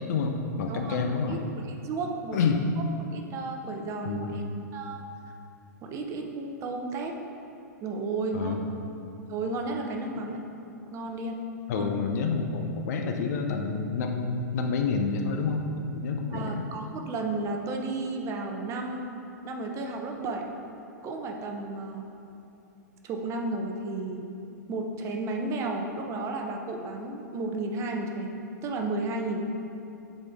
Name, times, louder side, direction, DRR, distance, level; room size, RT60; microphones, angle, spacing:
voice 1, 0.0-1.4 2.3-2.6 4.0-4.4 8.3-8.8 11.7-15.7 15.9-16.7, left 5 dB, 60° left, 4 dB, 0.7 m, -28 dB
voice 2, 0.7-1.0 1.3-1.4 1.8-2.5 3.1-4.4 4.7-5.0 5.8-7.2 7.8-8.6 9.3-10.4 10.9-11.4 11.7-11.9 16.3-19.2 19.4-20.6 21.0-22.1 23.0-24.3 24.7-29.4, right 2 dB, 30° right, 3 dB, 0.7 m, -33 dB
9.8 x 4.2 x 3.6 m, 2.8 s
hypercardioid pair, 120°, 10 cm